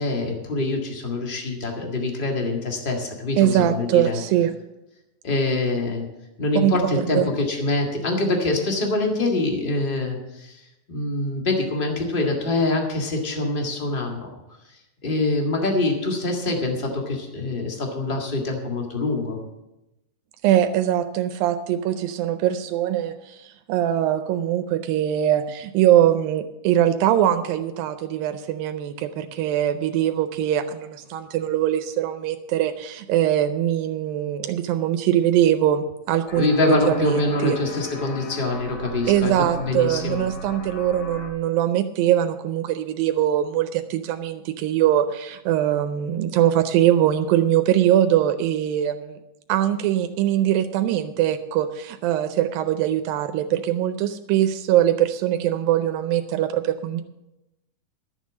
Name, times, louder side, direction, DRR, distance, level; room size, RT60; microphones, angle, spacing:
voice 1, 0.0-4.2 5.2-6.0 6.4-10.6 10.9-14.3 15.0-19.4 36.3-40.2, left 2 dB, 25° left, 1 dB, 1.0 m, -24 dB
voice 2, 3.4-4.5 6.6-7.3 20.4-37.6 39.1-49.2 49.5-57.0, right 11 dB, 85° right, 9 dB, 2.4 m, -22 dB
sound 1, 36.3-41.3, left 1 dB, 80° left, 3.8 m, -37 dB
12.0 x 7.4 x 7.3 m, 0.95 s
omnidirectional pair, 4.1 m